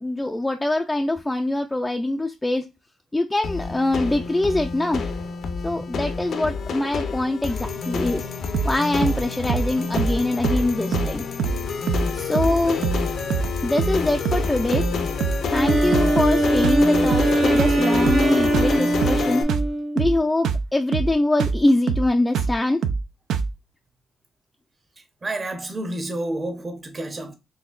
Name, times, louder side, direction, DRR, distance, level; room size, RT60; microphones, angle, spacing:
voice 1, 0.0-2.7 3.1-5.0 5.6-8.3 8.6-11.2 12.1-12.8 13.6-14.9 15.5-19.5 19.9-22.8, left 2 dB, 10° left, 0.3 m, -23 dB
sound 1, 3.4-19.4, left 5 dB, 60° left, 0.6 m, -28 dB
sound 2, 8.5-8.8 9.0-9.2 9.5-9.7 10.0-10.2 10.4-10.7 10.9-11.1 11.4-11.6 11.9-12.1 12.3-12.6 12.8-13.0 13.3-13.5 13.8-14.0 14.2-14.5 14.7-14.9 15.2-15.4 15.7-16.4 16.6-16.8 17.1-17.3 17.6-17.8 18.1-18.3 18.5-18.8 19.0-19.2 19.5-19.7 20.0-20.2 20.4-20.7 20.9-21.1 21.4-21.6 21.9-22.1 22.3-22.6 22.8-23.0 23.3-23.5, right 5 dB, 75° right, 0.4 m, -24 dB
Wind instrument woodwind instrument, 15.4-20.2, right 1 dB, 60° right, 1.5 m, -22 dB
voice 2, 25.0-27.3, right 1 dB, 30° right, 0.8 m, -30 dB
4.2 x 2.7 x 2.4 m
cardioid pair, 90°, 0 cm